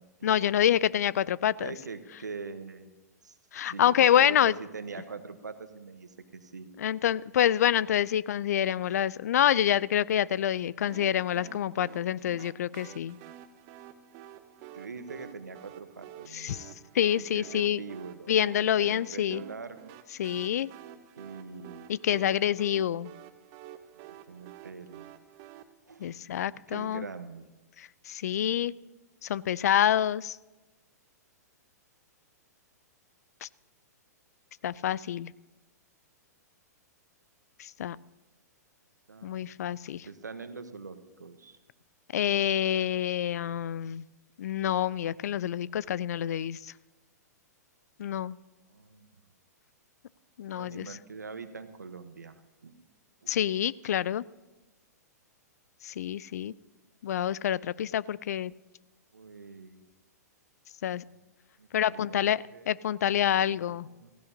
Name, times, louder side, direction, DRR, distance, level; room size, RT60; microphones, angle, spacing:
voice 1, 0.2-1.7 3.5-4.5 6.8-13.2 16.3-16.7 16.9-17.8 18.3-19.4 20.2-20.7 21.9-23.1 26.0-27.1 27.8-28.7 29.2-30.4 33.4-33.5 34.6-35.3 37.6-38.0 39.2-40.1 42.1-44.0 44.4-46.7 48.0-48.4 50.4-50.9 53.3-54.2 55.8-56.5 57.0-58.5 60.8-61.0 61.7-63.9, left 10 dB, 65° left, 22 dB, 0.4 m, -27 dB
voice 2, 1.6-2.9 3.2-3.4 3.6-6.7 8.8-8.9 11.7-11.8 14.7-16.9 17.2-18.3 18.8-20.0 21.2-22.0 24.1-25.1 25.9-26.2 26.7-27.6 39.1-39.6 40.1-41.6 48.7-49.2 50.5-52.8 53.2-53.4 59.1-59.8 61.1-61.2 61.6-62.7 63.4-64.1, right 4 dB, 90° right, 10 dB, 1.1 m, -43 dB
sound 1, 10.9-25.6, right 11 dB, 40° right, 0.8 m, -49 dB
16.0 x 15.5 x 2.8 m, 1.1 s
hypercardioid pair, 115°, 9 cm